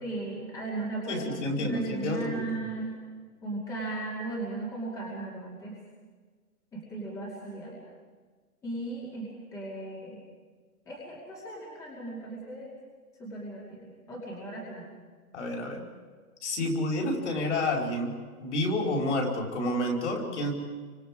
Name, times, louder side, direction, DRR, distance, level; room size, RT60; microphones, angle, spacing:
voice 1, 0.0-1.3 1.6-2.9 3.4-5.8 6.7-7.8 8.6-10.2 10.9-12.7 13.2-14.9, right 2 dB, 5° left, -5 dB, 2.4 m, -36 dB
voice 2, 1.1-2.6 15.3-15.8 16.4-18.2 18.4-20.5, left 1 dB, 50° left, 0 dB, 5.1 m, -29 dB
27.5 x 25.0 x 4.9 m, 1.5 s
hypercardioid pair, 170°, 45 cm